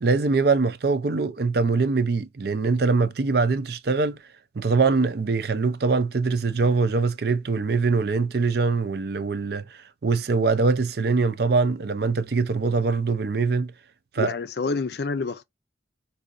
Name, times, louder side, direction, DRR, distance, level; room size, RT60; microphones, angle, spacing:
voice 1, 0.0-4.2 4.6-13.7 14.1-14.3, right 4 dB, 55° right, 0.5 m, -23 dB
voice 2, 14.2-15.4, left 4 dB, 60° left, 0.5 m, -28 dB
4.9 x 2.7 x 2.5 m
head